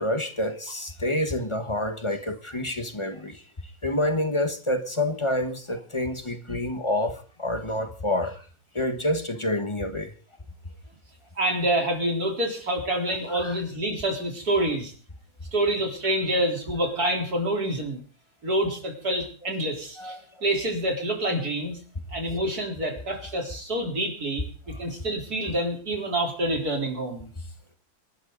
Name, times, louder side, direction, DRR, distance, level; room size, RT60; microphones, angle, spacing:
voice 1, 0.0-3.4 3.8-8.4 8.7-10.1 13.3-13.6 20.0-20.2, left 1 dB, 20° left, 1.3 m, -28 dB
voice 2, 11.4-14.9 15.5-18.0 18.4-20.2 20.4-21.8 22.1-27.3, right 1 dB, 85° right, 4.5 m, -27 dB
26.0 x 12.5 x 4.0 m
omnidirectional pair, 1.6 m